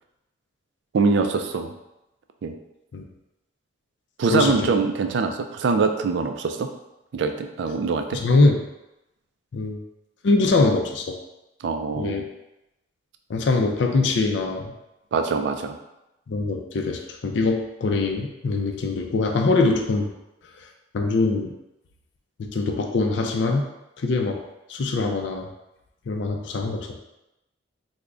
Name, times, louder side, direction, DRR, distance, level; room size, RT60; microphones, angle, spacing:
voice 1, 0.9-1.7 2.4-2.5 4.2-6.7 7.1-8.2 11.6-12.2 15.1-15.8, right 4 dB, 60° right, 6 dB, 0.3 m, -23 dB
voice 2, 4.3-4.8 8.1-8.6 9.5-9.8 10.2-11.2 11.9-12.2 13.3-14.7 16.3-20.1 20.9-21.5 22.4-23.7 24.0-24.4 24.7-25.5 26.1-27.0, left 3 dB, 65° left, 3 dB, 0.4 m, -23 dB
3.4 x 2.1 x 3.6 m, 0.92 s
head